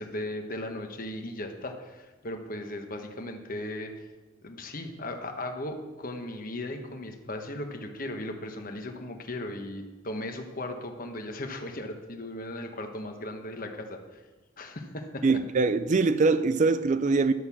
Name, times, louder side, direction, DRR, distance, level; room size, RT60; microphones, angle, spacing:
voice 1, 0.0-4.1 4.4-14.2 14.6-15.4, left 1 dB, 45° left, 4 dB, 1.3 m, -37 dB
voice 2, 15.2-17.3, right 4 dB, 40° right, 12 dB, 0.4 m, -23 dB
11.5 x 6.6 x 7.2 m, 1.2 s
head